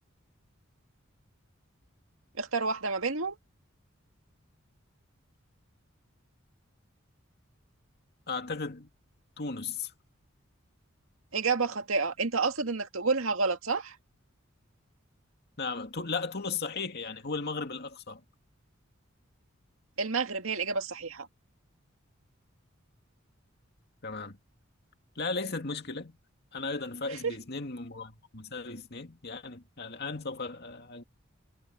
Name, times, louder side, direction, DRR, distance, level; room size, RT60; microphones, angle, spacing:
voice 1, 2.4-3.4 11.3-14.0 20.0-21.3 27.2-27.3, right 4 dB, 85° right, 2.0 m, -29 dB
voice 2, 8.3-8.9 9.4-9.9 15.6-18.2 24.0-24.4 25.2-26.2 26.5-31.0, left 4 dB, 55° left, 2.3 m, -36 dB
head